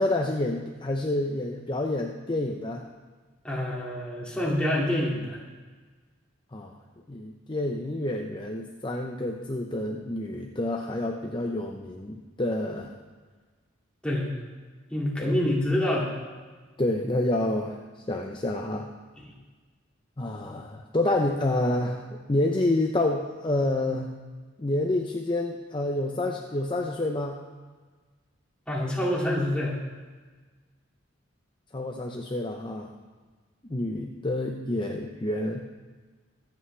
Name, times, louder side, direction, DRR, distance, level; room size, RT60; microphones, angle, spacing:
voice 1, 0.0-2.8 6.5-6.7 7.1-12.9 15.2-15.4 16.8-17.8 18.1-18.9 20.2-24.1 24.6-27.4 31.7-32.9 33.7-35.6, left 1 dB, 25° left, 2 dB, 0.7 m, -28 dB
voice 2, 3.4-5.4 14.0-14.3 14.9-16.1 19.2-19.3 28.7-29.8, left 1 dB, 5° left, -4 dB, 2.3 m, -27 dB
23.5 x 8.3 x 3.3 m, 1.4 s
head